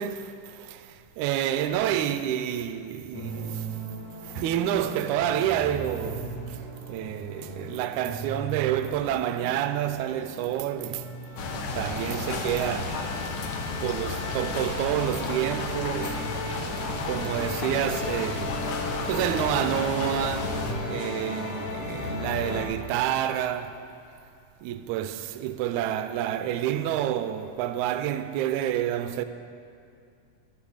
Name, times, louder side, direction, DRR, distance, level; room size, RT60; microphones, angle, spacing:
voice 1, 0.0-3.7 4.2-6.6 6.9-11.1 11.5-13.1 13.8-16.3 16.9-18.7 19.1-23.9 24.6-29.2, right 11 dB, 80° right, 1.8 m, -29 dB
sound 1, 3.1-22.6, left 1 dB, 60° left, 2.4 m, -36 dB
sound 2, 11.4-20.7, left 4 dB, 85° left, 1.1 m, -33 dB
13.0 x 6.0 x 6.3 m
omnidirectional pair, 3.6 m